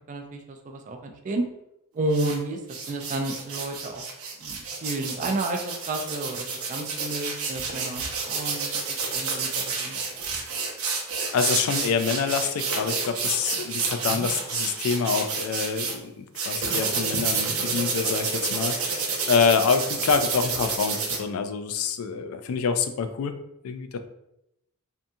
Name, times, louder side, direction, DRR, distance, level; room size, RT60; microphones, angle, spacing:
voice 1, 0.1-1.5 1.9-4.0 4.4-10.0 14.1-14.3, right 2 dB, 35° right, 4 dB, 0.3 m, -31 dB
sound 1, 2.1-2.4 2.7-15.9 16.4-21.2, right 5 dB, 85° right, 0.6 m, -29 dB
voice 2, 11.3-23.3 23.6-24.0, left 6 dB, 75° left, 10 dB, 0.3 m, -26 dB
2.7 x 2.3 x 2.6 m, 0.83 s
head